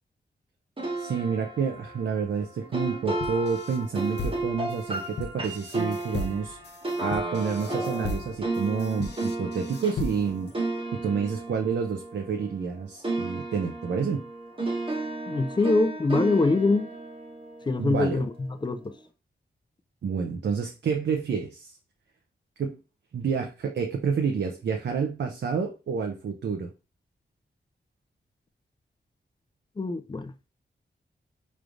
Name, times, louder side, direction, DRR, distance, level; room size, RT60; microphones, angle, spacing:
sound 1, 0.8-12.7 13.0-18.3, right 2 dB, 30° right, 1.1 m, -34 dB
voice 1, 1.0-6.6 7.0-10.5 10.9-14.2 17.8-18.2 20.0-21.7 22.6-22.8 23.1-26.7, right 6 dB, 75° right, 0.6 m, -29 dB
sound 2, 3.2-10.5, left 3 dB, 70° left, 0.6 m, -37 dB
voice 2, 15.3-16.9 17.7-18.9 29.8-30.3, left 3 dB, 25° left, 0.5 m, -24 dB
4.9 x 3.2 x 2.5 m
wide cardioid pair, 85°, 18 cm